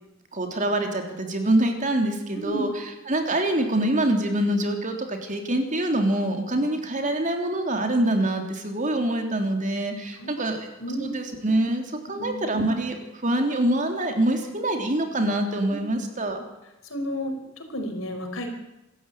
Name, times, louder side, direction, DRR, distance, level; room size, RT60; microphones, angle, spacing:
voice 1, 0.3-10.7 11.0-11.8 12.1-16.4, right 1 dB, 40° right, 4 dB, 3.4 m, -25 dB
voice 2, 2.3-2.6 10.2-10.5 10.8-11.1 12.2-12.4 15.7-15.8 16.8-18.5, equal, 75° left, 5 dB, 5.0 m, -32 dB
26.0 x 14.5 x 9.0 m, 0.99 s
head